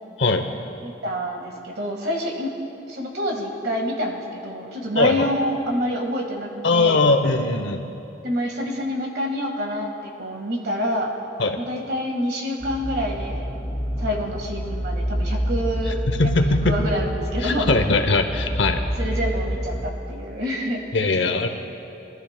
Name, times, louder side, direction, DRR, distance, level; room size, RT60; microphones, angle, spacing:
voice 1, 0.8-2.5 2.9-7.0 8.2-11.2 11.6-13.5 14.0-16.0 16.2-17.8 19.0-21.5, equal, 55° right, 1 dB, 1.6 m, -27 dB
voice 2, 5.0-5.3 6.6-7.9 11.4-11.6 15.9-16.8 17.4-18.8 20.9-21.5, left 3 dB, 70° left, 7 dB, 0.7 m, -20 dB
sound 1, 12.6-19.9, equal, 10° left, 0.8 m, -27 dB
22.0 x 12.5 x 2.2 m, 2.8 s
head